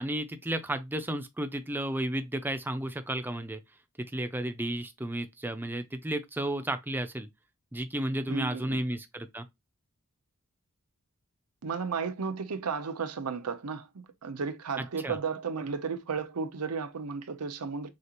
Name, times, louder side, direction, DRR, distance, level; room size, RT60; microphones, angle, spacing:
voice 1, 0.0-3.6 4.0-7.3 7.7-9.5 14.8-15.2, right 1 dB, 10° right, 0.5 m, -33 dB
voice 2, 8.3-8.8 11.6-17.9, right 5 dB, 90° right, 0.7 m, -34 dB
6.4 x 2.4 x 2.9 m
head